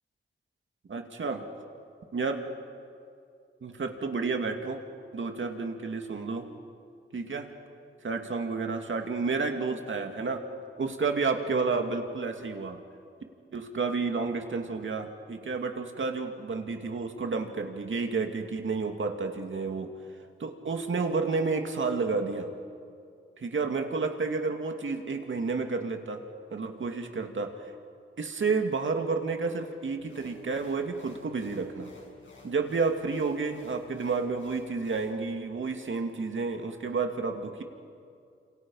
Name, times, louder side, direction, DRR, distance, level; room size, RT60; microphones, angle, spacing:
voice 1, 0.9-1.4 2.1-2.5 3.6-4.8 5.1-6.5 7.1-7.5 8.0-10.4 10.8-12.8 13.5-19.9 20.4-22.5 23.4-26.2 26.5-27.6 28.2-31.9 32.4-37.6, right 4 dB, 65° right, 4 dB, 2.4 m, -30 dB
sound 1, 30.0-35.1, left 3 dB, 65° left, 6.2 m, -53 dB
30.0 x 27.5 x 5.7 m, 2.4 s
wide cardioid pair, 85°, 21 cm